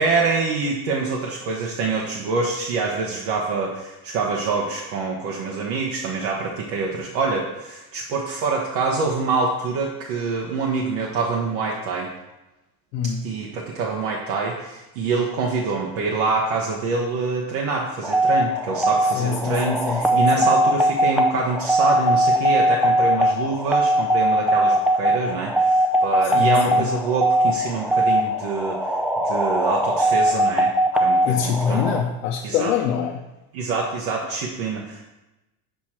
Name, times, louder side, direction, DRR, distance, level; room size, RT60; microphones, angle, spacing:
voice 1, 0.0-12.1 13.0-28.9 29.2-30.7 31.0-31.8 32.4-32.7 33.5-35.0, right 4 dB, 75° right, -2 dB, 1.2 m, -25 dB
voice 2, 12.9-13.3 19.1-20.5 26.3-26.9 31.2-33.2, left 7 dB, 90° left, 2 dB, 0.7 m, -25 dB
sound 1, 18.0-32.0, right 1 dB, ahead, 0.4 m, -20 dB
6.9 x 4.7 x 4.3 m, 1.0 s
supercardioid pair, 110°, 45 cm